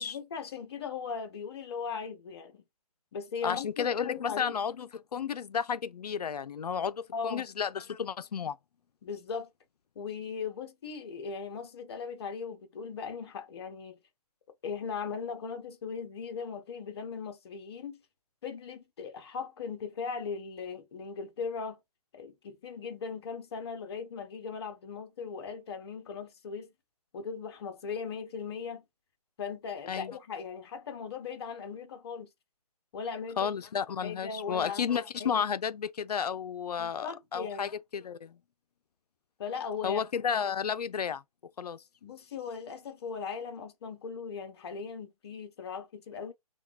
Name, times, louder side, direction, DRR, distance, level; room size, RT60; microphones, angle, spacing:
voice 1, 0.0-2.6 3.1-4.5 7.1-7.5 9.0-9.5 10.0-14.0 14.6-18.0 18.4-21.8 22.1-26.7 27.1-28.8 29.4-32.3 32.9-33.5 34.0-35.4 36.8-37.7 39.4-40.1 42.0-46.3, left 5 dB, 40° left, 0.8 m, -38 dB
voice 2, 3.4-8.6 29.9-30.2 33.4-38.4 39.8-41.2 41.6-41.8, left 7 dB, 85° left, 0.4 m, -32 dB
3.0 x 2.2 x 2.2 m
hypercardioid pair, 150°, 20 cm